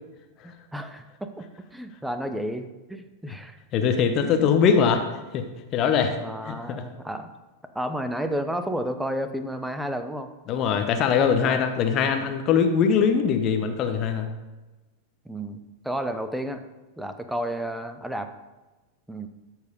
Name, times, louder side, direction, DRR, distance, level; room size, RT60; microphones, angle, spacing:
voice 1, 0.4-1.4 1.7-3.6 4.2-4.8 6.2-7.3 7.7-10.3 11.4-11.7 15.2-16.6 17.0-18.3 19.1-19.3, equal, 5° right, 9 dB, 0.8 m, -32 dB
voice 2, 3.7-5.0 5.3-5.4 5.7-6.1 6.5-6.8 10.5-14.3, left 7 dB, 35° left, 5 dB, 1.0 m, -22 dB
13.0 x 4.6 x 5.3 m, 1.2 s
figure-of-eight pair, 90°, 0 cm